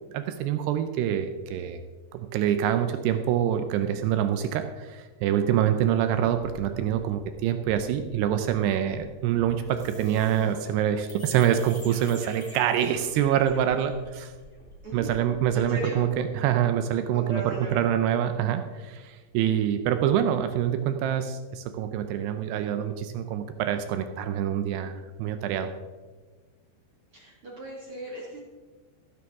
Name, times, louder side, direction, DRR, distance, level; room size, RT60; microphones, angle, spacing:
voice 1, 0.1-1.8 2.1-14.3 14.9-24.9 25.2-25.7, right 10 dB, 85° right, 8 dB, 2.4 m, -26 dB
sound 1, 6.2-16.2, equal, 15° left, 0.8 m, -49 dB
voice 2, 15.5-16.1 17.1-17.8 27.1-28.4, right 1 dB, 50° right, -3 dB, 1.6 m, -36 dB
14.5 x 12.5 x 3.6 m, 1.4 s
omnidirectional pair, 5.3 m